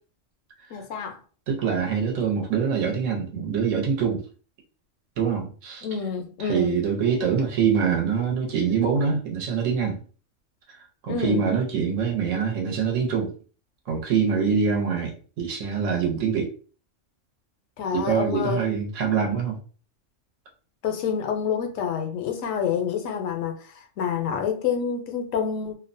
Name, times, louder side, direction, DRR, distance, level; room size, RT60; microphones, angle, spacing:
voice 1, 0.7-1.2 5.8-6.8 11.1-11.5 17.8-18.8 20.8-25.8, left 7 dB, 85° left, 1.0 m, -28 dB
voice 2, 1.5-4.3 5.2-5.8 6.4-10.0 11.0-13.3 13.9-16.5 17.9-19.6, right 6 dB, 75° right, 1.1 m, -24 dB
2.8 x 2.1 x 2.5 m
omnidirectional pair, 1.3 m